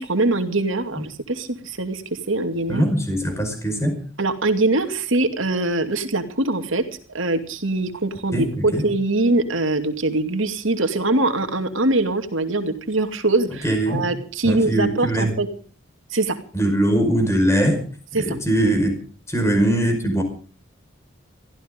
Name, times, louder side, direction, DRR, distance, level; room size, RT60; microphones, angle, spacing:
voice 1, 0.0-2.8 4.2-6.8 7.1-15.5 16.1-16.4 18.1-18.4, right 2 dB, 70° right, 7 dB, 2.5 m, -23 dB
voice 2, 2.7-4.0 8.3-8.8 13.6-14.0 14.4-15.3 16.5-17.8 18.1-19.0 19.3-20.2, right 1 dB, 15° left, 6 dB, 5.1 m, -21 dB
23.5 x 15.0 x 3.7 m, 0.39 s
head